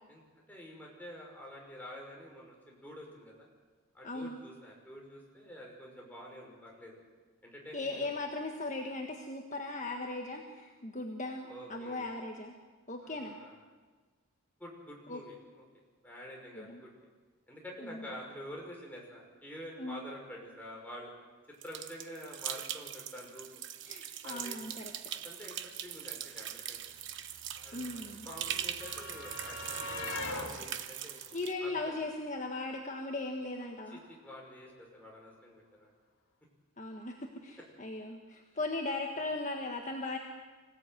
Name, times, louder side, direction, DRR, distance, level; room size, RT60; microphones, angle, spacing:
voice 1, 0.5-3.5 3.9-7.0 7.4-8.1 11.5-12.1 13.0-13.6 14.6-16.9 17.5-21.1 21.6-23.6 24.2-24.7 25.1-26.8 27.6-31.2 31.6-31.9 33.9-35.9 39.1-39.3, equal, 10° left, -2 dB, 6.0 m, -48 dB
voice 2, 4.0-4.4 7.7-12.6 12.9-13.4 15.1-15.2 16.5-16.8 17.9-18.1 19.8-20.0 23.9-24.9 27.7-28.3 31.3-34.0 36.8-40.2, left 2 dB, 35° left, 2 dB, 1.6 m, -38 dB
sound 1, 21.6-31.5, right 10 dB, 55° right, 1.2 m, -41 dB
sound 2, 26.0-26.1 26.3-32.4 33.6-33.8 34.0-34.2, left 2 dB, 70° left, 2.9 m, -44 dB
25.5 x 17.0 x 9.3 m, 1.4 s
head